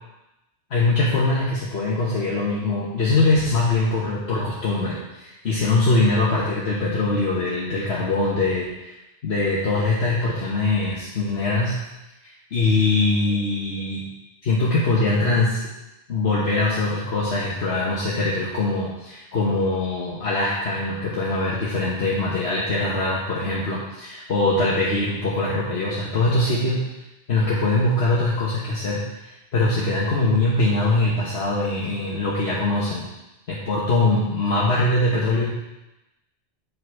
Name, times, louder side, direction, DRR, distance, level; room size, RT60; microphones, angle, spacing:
voice 1, 0.7-8.9 9.2-11.7 12.5-14.0 14.4-15.7 16.1-26.8 27.3-33.0 33.5-35.5, left 2 dB, 65° left, -6 dB, 1.5 m, -22 dB
8.1 x 5.7 x 4.7 m, 0.95 s
omnidirectional pair, 1.1 m